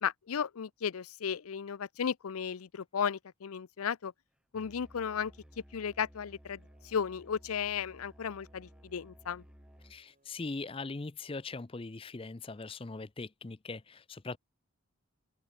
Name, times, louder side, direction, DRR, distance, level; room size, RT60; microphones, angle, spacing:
voice 1, 0.0-4.1 4.5-5.3 5.7-9.4, left 7 dB, 80° left, 0.5 m, -35 dB
Musical instrument, 4.5-10.0, equal, 5° right, 0.8 m, -57 dB
sound 1, 4.6-11.1, right 1 dB, 35° right, 5.3 m, -74 dB
voice 2, 9.9-14.4, left 3 dB, 25° left, 0.5 m, -41 dB
open air
head